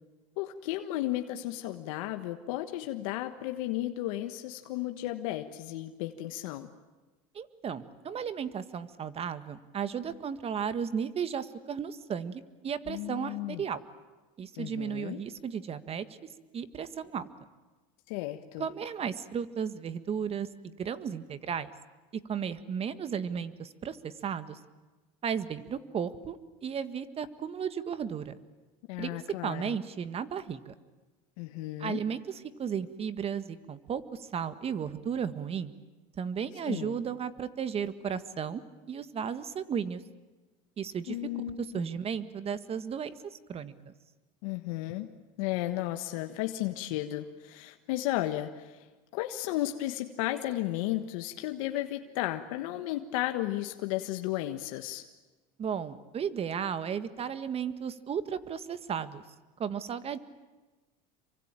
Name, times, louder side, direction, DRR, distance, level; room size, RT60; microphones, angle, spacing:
voice 1, 0.4-6.7 12.9-13.6 14.6-15.2 18.1-18.7 28.9-29.8 31.4-32.0 36.7-37.0 41.1-41.8 44.4-45.1 45.4-48.9 49.1-55.0, left 15 dB, 80° left, 7 dB, 1.5 m, -34 dB
voice 2, 7.3-13.8 14.4-16.0 16.5-17.3 18.6-21.7 22.3-24.6 25.2-26.4 26.6-28.4 29.0-30.7 31.8-35.7 36.2-38.6 38.9-40.0 40.8-41.2 41.7-43.9 55.6-59.2 59.6-60.2, right 7 dB, 35° right, 13 dB, 1.7 m, -34 dB
27.5 x 24.0 x 9.0 m, 1.2 s
supercardioid pair, 110°, 17 cm